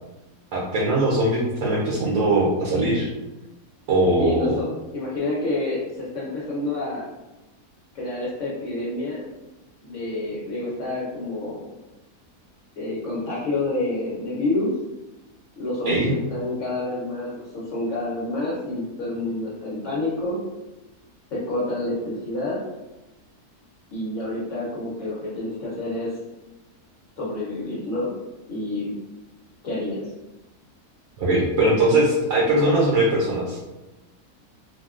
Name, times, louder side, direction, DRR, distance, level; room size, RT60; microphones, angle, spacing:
voice 1, 0.5-3.1 3.9-4.5 15.8-16.1 31.2-33.6, right 1 dB, 65° right, -5 dB, 1.0 m, -21 dB
voice 2, 4.2-4.7 4.9-7.0 7.9-9.2 9.8-11.6 12.8-14.7 15.6-20.4 21.3-22.6 23.9-26.2 27.2-28.1 28.5-29.0 29.6-30.1, left 2 dB, 65° left, -7 dB, 1.0 m, -28 dB
3.5 x 2.2 x 2.4 m, 1.0 s
omnidirectional pair, 1.6 m